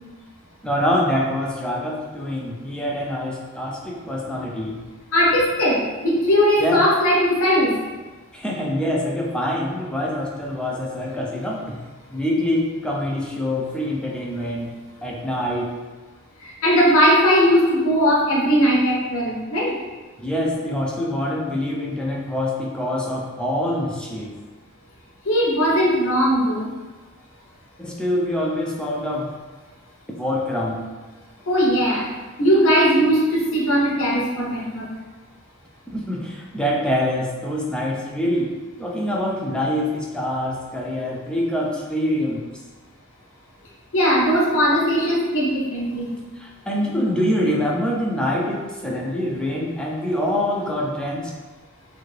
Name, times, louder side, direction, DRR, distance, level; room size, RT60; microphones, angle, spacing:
voice 1, 0.6-4.8 6.6-6.9 8.3-11.8 12.1-14.7 15.0-15.7 20.2-24.4 27.8-29.3 30.2-30.9 35.9-38.5 38.8-42.5 44.5-44.6 46.4-51.3, left 1 dB, 5° left, -2 dB, 0.3 m, -25 dB
voice 2, 5.1-7.7 16.4-19.7 25.3-26.7 31.5-32.1 32.4-34.9 43.9-46.1, equal, 70° left, -4 dB, 0.7 m, -19 dB
2.6 x 2.5 x 3.1 m, 1.3 s
head